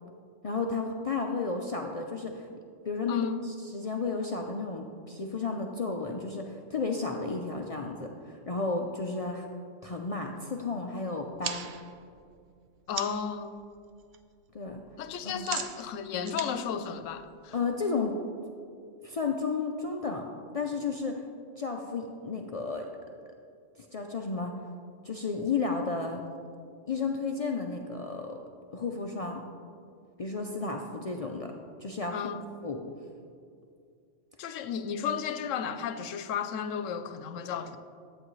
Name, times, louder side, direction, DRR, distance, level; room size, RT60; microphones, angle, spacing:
voice 1, 0.4-2.5 2.8-9.5 9.8-11.7 14.5-14.8 15.2-15.5 17.5-18.1 19.0-20.3 20.5-21.2 21.6-22.9 23.8-24.5 25.0-26.2 26.9-28.4 28.7-29.4 30.2-31.5 31.8-32.3 32.6-32.8, left 4 dB, 55° left, 2 dB, 0.4 m, -32 dB
voice 2, 3.1-3.4 12.9-13.5 15.0-17.5 32.1-32.5 34.4-37.8, left 7 dB, 90° left, 10 dB, 0.9 m, -33 dB
sound 1, 11.2-13.4 13.7-14.2 14.4-17.7, right 7 dB, 60° right, 0.6 m, -40 dB
11.5 x 8.5 x 3.1 m, 2.4 s
omnidirectional pair, 1.3 m